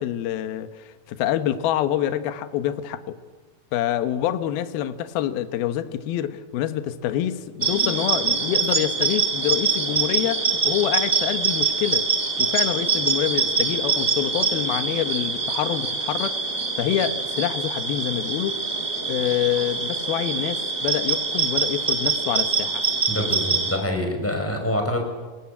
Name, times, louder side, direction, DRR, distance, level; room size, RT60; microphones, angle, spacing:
voice 1, 0.0-3.2 3.7-12.1 12.4-16.3 16.8-18.6 19.1-22.8, left 11 dB, 70° left, 10 dB, 2.8 m, -26 dB
sound 1, 7.6-23.8, right 4 dB, 15° right, 3.4 m, -24 dB
voice 2, 23.1-25.0, left 1 dB, 5° left, 3 dB, 5.1 m, -25 dB
28.0 x 19.5 x 8.6 m, 1.4 s
omnidirectional pair, 5.0 m